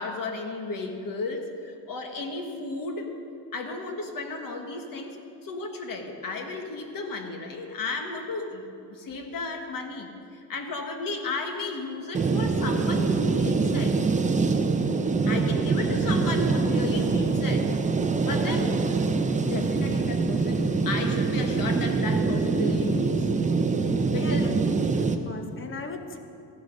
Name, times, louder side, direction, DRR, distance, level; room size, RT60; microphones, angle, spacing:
voice 1, 0.0-3.1 3.5-5.2 5.4-14.0 15.3-17.7 18.2-18.7 19.4-23.3 24.1-24.6, left 3 dB, 50° left, 4 dB, 1.6 m, -34 dB
sound 1, 12.1-25.2, right 4 dB, 15° right, 0.6 m, -24 dB
voice 2, 24.2-24.5 24.9-26.2, left 3 dB, 30° left, 6 dB, 1.1 m, -38 dB
15.0 x 11.5 x 5.4 m, 2.5 s
cardioid pair, 135°, 44 cm